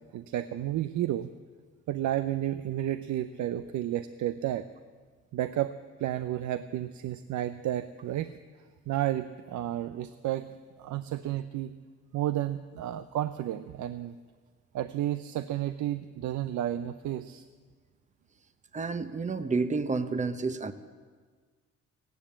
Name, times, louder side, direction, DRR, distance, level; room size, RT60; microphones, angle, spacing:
voice 1, 0.1-1.3 1.9-4.6 5.3-5.7 6.0-8.3 8.9-10.5 10.8-11.7 12.1-14.1 14.7-17.4, right 12 dB, 70° right, 12 dB, 0.6 m, -31 dB
voice 2, 18.7-20.7, right 4 dB, 25° right, 11 dB, 0.9 m, -30 dB
15.5 x 10.5 x 8.7 m, 1.5 s
cardioid pair, 90°, 30 cm